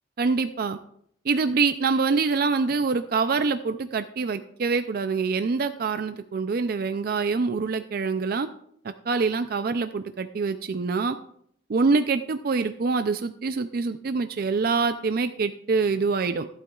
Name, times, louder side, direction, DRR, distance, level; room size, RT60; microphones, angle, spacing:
voice 1, 0.2-0.8 1.2-8.5 8.8-11.2 11.7-16.5, right 4 dB, 50° right, 10 dB, 0.4 m, -25 dB
14.5 x 12.0 x 2.4 m, 0.68 s
head